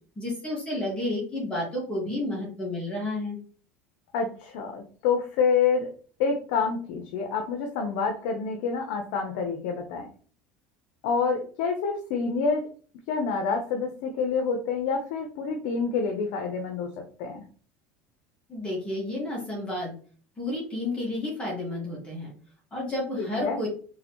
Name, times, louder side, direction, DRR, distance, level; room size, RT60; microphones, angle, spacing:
voice 1, 0.2-3.4 18.5-19.9 20.4-22.3 22.7-23.7, left 1 dB, 20° left, -3 dB, 1.8 m, -31 dB
voice 2, 4.1-5.9 6.2-10.1 11.0-12.7 13.1-16.9 17.2-17.4 23.2-23.6, left 5 dB, 75° left, 4 dB, 0.7 m, -27 dB
3.9 x 3.3 x 3.0 m, 0.42 s
supercardioid pair, 120°, 6 cm